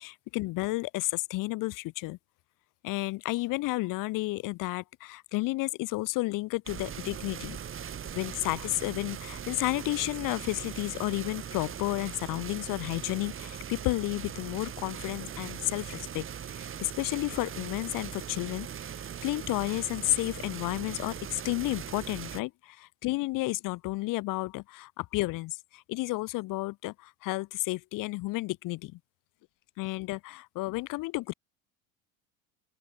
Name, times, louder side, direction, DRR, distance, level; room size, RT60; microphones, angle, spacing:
voice 1, 0.0-2.2 2.8-7.6 8.1-16.3 16.5-18.7 19.2-29.0 29.8-31.3, left 21 dB, 55° left, 2.0 m, -32 dB
sound 1, 6.7-22.4, right 8 dB, 35° right, 3.0 m, -40 dB
open air
hypercardioid pair, 80°, 39 cm